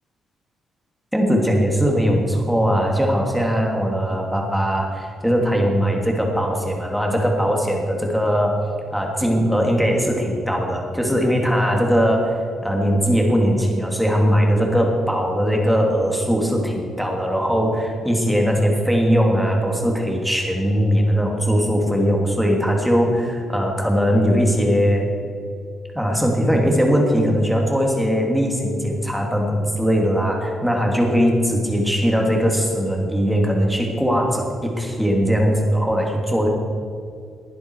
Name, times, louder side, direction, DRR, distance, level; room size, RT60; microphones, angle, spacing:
voice 1, 1.1-8.6 8.9-25.1 25.9-36.5, equal, ahead, 0 dB, 2.8 m, -20 dB
20.0 x 10.5 x 4.8 m, 2.3 s
cardioid pair, 125°, 0 cm